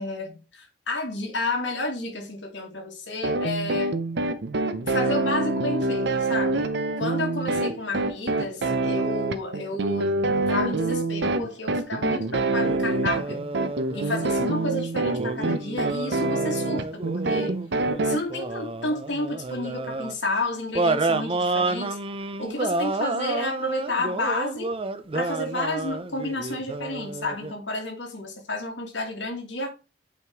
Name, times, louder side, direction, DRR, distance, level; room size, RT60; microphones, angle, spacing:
voice 1, 0.0-3.9 4.9-6.7 7.0-13.5 13.9-17.6 18.0-22.0 22.4-24.7 25.1-29.7, left 2 dB, 75° left, 2.4 m, -31 dB
sound 1, 3.2-18.2, right 2 dB, 65° right, 0.7 m, -26 dB
sound 2, 12.6-14.3 15.0-20.1 20.7-27.5, right 3 dB, 30° right, 0.6 m, -30 dB
8.4 x 3.6 x 4.7 m
head